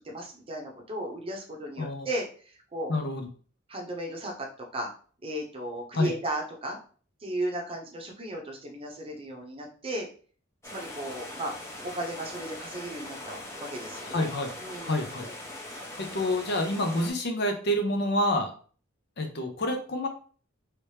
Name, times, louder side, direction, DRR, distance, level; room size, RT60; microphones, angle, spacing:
voice 1, 0.0-2.9 3.7-4.5 4.7-4.9 5.2-6.8 7.2-10.1 10.6-11.5 11.8-14.3 14.6-15.1, right 1 dB, 30° right, 0 dB, 0.8 m, -35 dB
voice 2, 1.8-2.1 2.9-3.3 5.9-6.1 14.1-14.5 14.8-15.3 15.6-18.5 19.2-20.1, left 1 dB, 55° left, 4 dB, 0.7 m, -28 dB
sound 1, 10.6-17.1, left 1 dB, 15° left, 0.8 m, -41 dB
3.2 x 2.9 x 3.2 m, 0.42 s
head